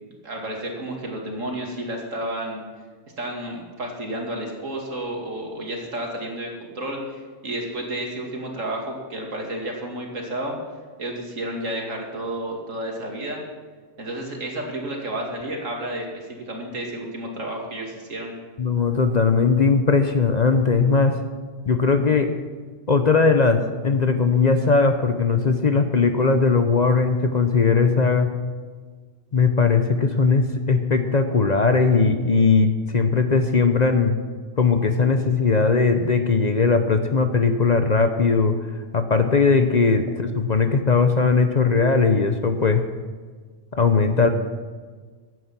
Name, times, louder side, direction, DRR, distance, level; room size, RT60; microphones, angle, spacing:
voice 1, 0.0-2.6 3.2-7.2 7.4-10.6 11.0-13.4 14.0-18.3, right 1 dB, 85° right, 0 dB, 2.7 m, -31 dB
voice 2, 18.6-21.1 21.6-22.3 22.9-28.3 29.3-34.2 34.6-38.5 38.9-42.8 43.7-44.3, left 4 dB, 40° left, 7 dB, 0.8 m, -19 dB
15.0 x 9.4 x 5.9 m, 1.5 s
omnidirectional pair, 1.3 m